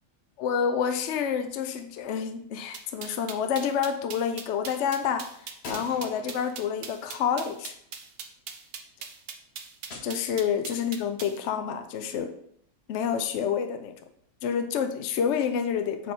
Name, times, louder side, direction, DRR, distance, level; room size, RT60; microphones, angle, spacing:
voice 1, 0.4-5.3 5.7-7.7 10.0-12.3 12.9-13.9 14.4-16.1, left 7 dB, 70° left, 7 dB, 0.7 m, -28 dB
Gunshot gunfire, 2.7-3.7 5.6-8.0 9.9-10.9, left 2 dB, 45° left, 1.2 m, -47 dB
sound 1, 2.7-11.4, right 6 dB, 60° right, 0.6 m, -40 dB
4.7 x 4.2 x 5.7 m, 0.68 s
omnidirectional pair, 1.8 m